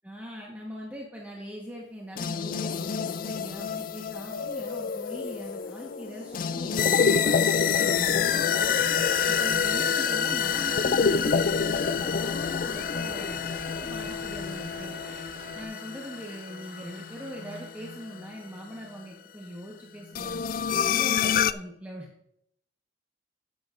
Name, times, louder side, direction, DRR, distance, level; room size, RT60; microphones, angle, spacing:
voice 1, 0.0-7.5 7.8-8.1 9.2-15.0 15.5-22.1, equal, 10° right, -3 dB, 1.2 m, -41 dB
sound 1, 2.2-18.3 20.1-21.5, left 6 dB, 45° left, 0.3 m, -27 dB
sound 2, 7.7-15.6, right 2 dB, 40° right, 0.7 m, -44 dB
Applause, 10.9-18.6, right 3 dB, 60° right, 2.0 m, -52 dB
13.0 x 8.7 x 2.6 m, 0.73 s
head